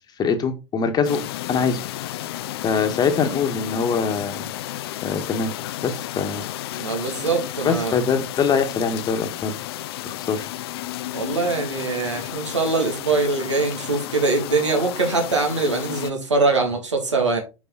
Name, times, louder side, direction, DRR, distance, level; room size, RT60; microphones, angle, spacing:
voice 1, 0.2-1.2 1.5-2.2 2.6-4.5 5.0-5.5 5.8-6.8 7.6-9.6 10.0-10.5, left 5 dB, 25° left, 1.4 m, -23 dB
sound 1, 1.0-16.1, left 14 dB, 55° left, 0.5 m, -32 dB
voice 2, 6.8-8.0 11.1-17.4, right 3 dB, 75° right, 2.3 m, -23 dB
7.1 x 5.4 x 3.9 m
figure-of-eight pair, 85°, 15 cm